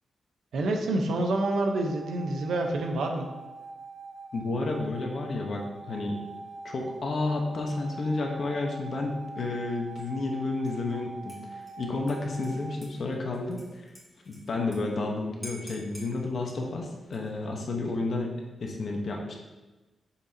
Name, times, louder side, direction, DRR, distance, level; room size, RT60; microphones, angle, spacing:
voice 1, 0.5-3.3, right 2 dB, 75° right, 3 dB, 0.9 m, -27 dB
sound 1, 1.2-12.8, right 3 dB, 25° right, 0.4 m, -44 dB
voice 2, 4.3-6.2 6.6-13.9 14.3-19.4, left 3 dB, 50° left, 1 dB, 1.1 m, -31 dB
Dishes pots and pans / Liquid, 10.7-11.0 11.3-14.8 15.1-15.2 15.4-16.1 17.0-17.5, equal, ahead, 2.1 m, -48 dB
7.1 x 6.5 x 2.9 m, 1.1 s
wide cardioid pair, 150°, 0 cm